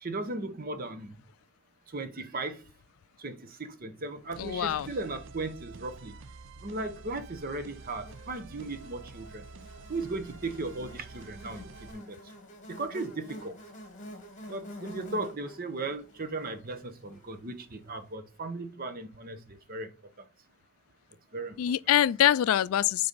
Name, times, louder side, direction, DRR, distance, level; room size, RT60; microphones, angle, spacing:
voice 1, 0.0-1.2 1.9-2.6 3.2-6.1 6.6-9.5 9.9-12.2 12.7-13.6 14.5-19.9 20.2-20.3 21.3-21.7, right 2 dB, 40° right, 0.8 m, -37 dB
sound 1, 4.3-11.9, right 3 dB, 60° right, 0.4 m, -48 dB
voice 2, 4.4-4.9 21.6-23.1, left 11 dB, 75° left, 0.3 m, -24 dB
Buzz, 7.3-17.7, equal, 35° left, 1.3 m, -48 dB
6.6 x 4.0 x 4.0 m
head